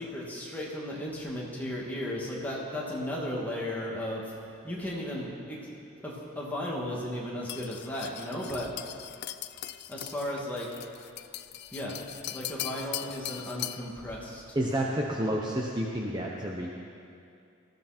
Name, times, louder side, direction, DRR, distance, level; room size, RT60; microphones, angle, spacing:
voice 1, 0.0-4.2 4.6-5.6 6.0-8.7 9.9-10.7 11.7-12.0 12.3-14.4, left 1 dB, 10° left, -5 dB, 2.5 m, -35 dB
sound 1, 7.5-13.9, left 13 dB, 50° left, 0.4 m, -40 dB
voice 2, 14.5-16.7, right 1 dB, 20° right, -2 dB, 1.0 m, -30 dB
19.5 x 14.5 x 4.5 m, 2.5 s
head